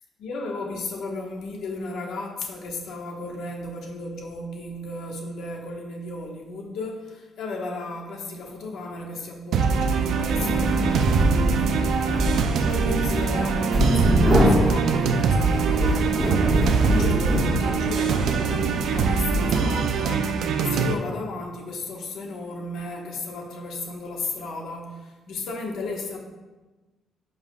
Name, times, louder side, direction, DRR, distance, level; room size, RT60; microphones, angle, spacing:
voice 1, 0.2-26.2, left 2 dB, 75° left, 0 dB, 1.4 m, -34 dB
sound 1, 9.5-21.0, right 5 dB, 75° right, 0.5 m, -23 dB
sound 2, 10.1-20.1, equal, 25° right, 1.6 m, -25 dB
10.5 x 5.4 x 2.4 m, 1.2 s
cardioid pair, 90°, 0 cm